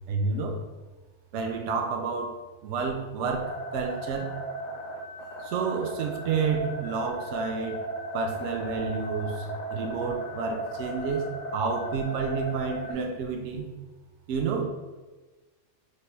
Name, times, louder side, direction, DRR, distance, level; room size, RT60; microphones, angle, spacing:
voice 1, 0.1-0.6 1.3-4.3 5.4-7.8 8.1-13.7 14.3-14.6, right 5 dB, 70° right, 2 dB, 0.9 m, -30 dB
sound 1, 3.3-12.9, right 1 dB, 90° left, 0.3 m, -36 dB
3.3 x 2.2 x 4.2 m, 1.2 s
omnidirectional pair, 1.3 m